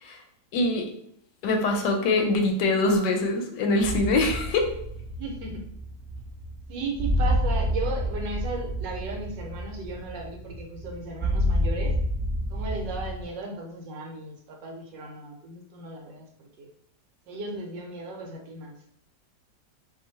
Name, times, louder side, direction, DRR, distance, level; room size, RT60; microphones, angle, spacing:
voice 1, 0.5-0.9 1.4-4.7, left 2 dB, 75° left, 3 dB, 1.2 m, -23 dB
sound 1, 3.8-13.2, equal, 10° left, 0.8 m, -29 dB
voice 2, 5.2-5.6 6.7-12.0 12.5-16.7 17.3-18.8, right 3 dB, 75° right, 1 dB, 1.3 m, -36 dB
2.9 x 2.5 x 3.9 m, 0.68 s
omnidirectional pair, 2.0 m